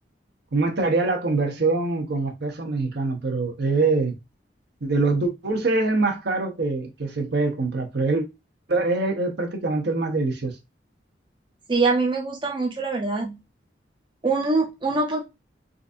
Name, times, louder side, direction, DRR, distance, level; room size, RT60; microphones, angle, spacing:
voice 1, 0.5-4.2 4.8-8.2 8.7-10.5, right 3 dB, 65° right, 0.9 m, -24 dB
voice 2, 11.7-13.4 14.2-15.2, right 3 dB, 25° right, 0.6 m, -23 dB
3.9 x 2.6 x 2.4 m
head